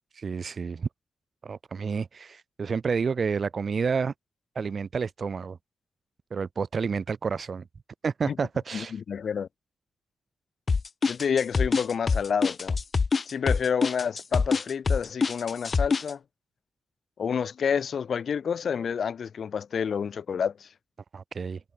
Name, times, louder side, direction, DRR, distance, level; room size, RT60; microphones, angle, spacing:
voice 1, 0.2-0.9 1.4-4.1 4.6-5.6 6.3-7.6 8.0-8.9 21.1-21.6, right 5 dB, 45° right, 7.5 m, -29 dB
voice 2, 8.7-9.5 11.1-12.8 13.3-16.2 17.2-20.7, left 7 dB, 60° left, 4.9 m, -29 dB
sound 1, 10.7-16.1, left 4 dB, 35° left, 1.6 m, -24 dB
wide cardioid pair, 175°, 0 cm